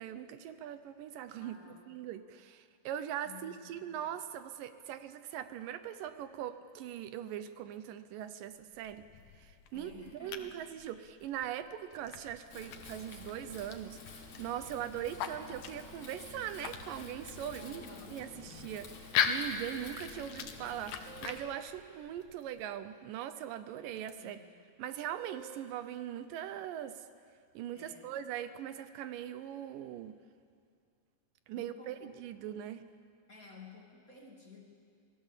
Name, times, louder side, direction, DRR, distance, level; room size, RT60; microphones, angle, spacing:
voice 1, 0.0-9.1 9.3-17.8 18.1-24.4 24.8-27.1 27.5-30.2 31.5-32.8, right 10 dB, 80° right, 11 dB, 2.3 m, -41 dB
voice 2, 1.4-1.9 3.2-4.0 9.7-10.6 17.6-18.2 24.2-24.4 27.7-28.1 31.5-32.1 33.3-34.6, left 4 dB, 25° left, -1 dB, 2.9 m, -53 dB
sound 1, 8.5-22.7, left 8 dB, 85° left, 3.0 m, -41 dB
Wind, 12.5-21.4, left 3 dB, 55° left, 3.3 m, -50 dB
sound 2, 20.8-21.7 23.9-24.1 25.2-25.8, right 7 dB, 60° right, 1.6 m, -51 dB
27.0 x 18.0 x 7.4 m, 2.3 s
omnidirectional pair, 4.0 m